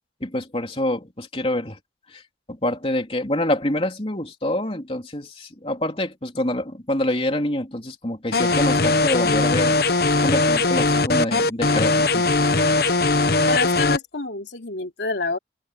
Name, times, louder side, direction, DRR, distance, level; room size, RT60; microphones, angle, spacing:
voice 1, 0.2-1.8 2.1-2.2 2.5-9.7 10.2-12.3, left 1 dB, 35° left, 3.4 m, -26 dB
sound 1, 8.3-14.0, left 3 dB, 60° left, 1.0 m, -19 dB
voice 2, 13.5-15.4, left 3 dB, 85° left, 3.0 m, -27 dB
head